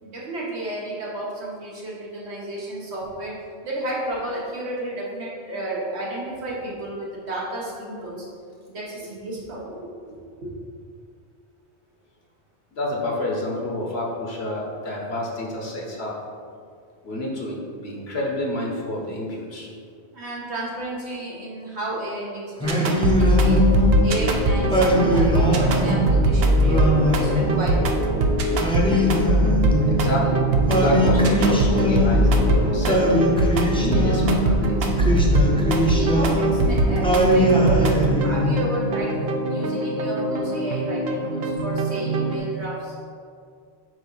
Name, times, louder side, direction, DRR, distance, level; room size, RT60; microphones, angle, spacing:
voice 1, 0.0-3.3 3.6-8.3 8.7-9.9 10.4-10.5 15.7-15.8 20.1-27.8 35.9-39.1 39.5-42.9, right 1 dB, 85° right, -5 dB, 1.7 m, -32 dB
voice 2, 12.7-16.2 17.0-17.6 17.8-19.7 29.9-33.3 33.8-35.1, left 1 dB, 70° left, -2 dB, 1.4 m, -29 dB
Singing, 22.6-24.1 24.7-26.0 26.6-28.0 28.6-30.1 30.7-32.5 32.9-34.5 35.0-36.6 37.0-38.6, left 1 dB, 5° left, 0.6 m, -21 dB
sound 1, 22.6-42.4, right 1 dB, 65° right, 0.9 m, -21 dB
7.8 x 2.7 x 5.6 m, 2.3 s
omnidirectional pair, 1.1 m